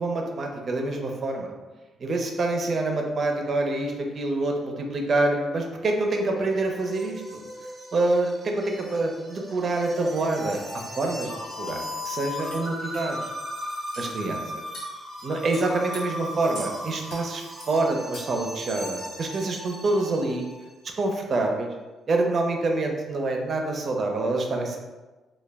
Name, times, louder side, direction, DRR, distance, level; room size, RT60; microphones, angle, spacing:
voice 1, 0.0-1.5 2.0-7.4 7.9-11.3 11.6-13.2 14.0-14.6 15.2-20.5 21.0-21.7 22.1-24.8, right 2 dB, 45° right, 2 dB, 0.5 m, -26 dB
sound 1, 6.0-20.6, left 1 dB, 20° right, 0.9 m, -37 dB
sound 2, 11.0-11.1 11.7-11.8 12.5-12.6 12.9-13.1 13.9-14.1 14.7-14.9 15.5-16.0 16.5-16.7 17.1-17.2 17.6-17.7 18.1-18.4, left 1 dB, 80° left, 0.8 m, -41 dB
2.2 x 2.1 x 3.3 m, 1.2 s
cardioid pair, 90°, 0 cm